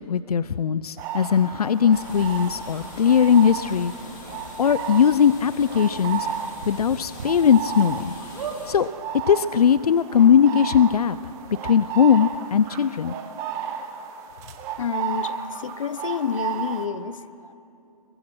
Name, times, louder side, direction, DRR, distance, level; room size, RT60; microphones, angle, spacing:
voice 1, 0.0-3.9 4.6-6.3 6.7-8.1 8.7-8.9 9.3-11.2 11.5-13.1, left 7 dB, 85° left, 15 dB, 0.6 m, -19 dB
sound 1, 1.0-16.9, right 7 dB, 15° right, 1.0 m, -33 dB
sound 2, 1.9-8.7, left 4 dB, 30° left, 4.6 m, -43 dB
sound 3, 2.2-2.3 2.8-2.9 3.9-4.0 4.3-4.4 4.8-4.9 6.6-7.3 7.8-7.9 8.3-8.6 9.5-9.6 9.7-9.8, right 7 dB, 55° right, 4.0 m, -35 dB
voice 2, 14.8-17.5, left 7 dB, 60° left, 14 dB, 1.0 m, -29 dB
25.5 x 23.0 x 6.3 m, 2.7 s
hypercardioid pair, 165°, 19 cm